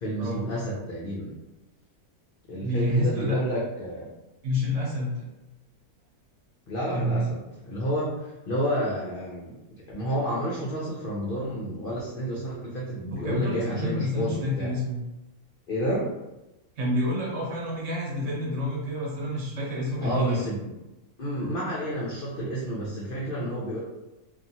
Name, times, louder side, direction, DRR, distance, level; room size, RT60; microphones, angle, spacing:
voice 1, 0.0-1.3 2.5-4.1 6.7-14.7 15.7-16.1 20.0-20.6 21.2-23.8, equal, 65° left, -5 dB, 0.5 m, -30 dB
voice 2, 2.6-3.4 4.4-5.3 6.9-7.3 13.1-15.0 16.8-20.5, left 1 dB, 60° right, -4 dB, 1.1 m, -28 dB
2.8 x 2.4 x 2.6 m, 0.99 s
omnidirectional pair, 1.6 m